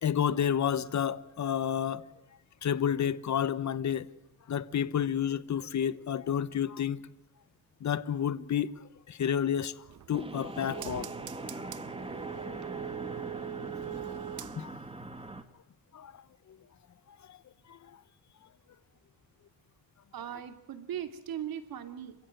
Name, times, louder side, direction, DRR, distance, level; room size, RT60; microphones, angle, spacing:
voice 1, 0.0-2.0 2.6-4.1 4.5-7.0 7.8-8.7 9.1-9.7 10.1-11.1 11.5-11.6 12.4-12.6 14.6-14.7 15.9-16.1 17.3-17.4 17.7-17.8, left 9 dB, 50° left, 1.1 m, -30 dB
sound 1, 9.8-15.0 15.3-15.4, right 13 dB, 60° right, 0.8 m, -42 dB
sound 2, 10.1-15.4, right 2 dB, 15° right, 2.1 m, -41 dB
voice 2, 20.1-22.1, right 10 dB, 80° right, 2.7 m, -39 dB
26.5 x 16.0 x 9.1 m
cardioid pair, 100°, 35 cm